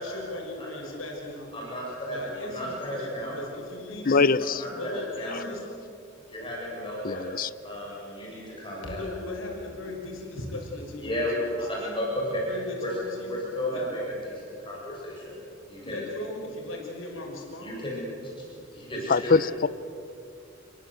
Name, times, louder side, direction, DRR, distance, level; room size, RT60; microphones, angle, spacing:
voice 1, 0.0-1.6 2.1-4.3 4.7-5.6 8.8-11.3 11.8-12.0 12.5-13.4 13.7-13.8 15.8-17.7, left 2 dB, 85° left, 0 dB, 6.0 m, -38 dB
voice 2, 1.5-3.3 4.6-4.9 5.2-5.4 6.3-7.3 7.6-9.0 11.0-12.4 12.8-12.9 13.3-15.4 15.7-16.0 17.6-18.5 18.7-19.3, equal, 25° left, -4 dB, 8.0 m, -33 dB
voice 3, 4.0-4.6 5.3-5.4 7.0-7.5 19.1-19.7, left 4 dB, 45° left, 17 dB, 0.6 m, -23 dB
28.0 x 23.5 x 8.1 m, 2.5 s
head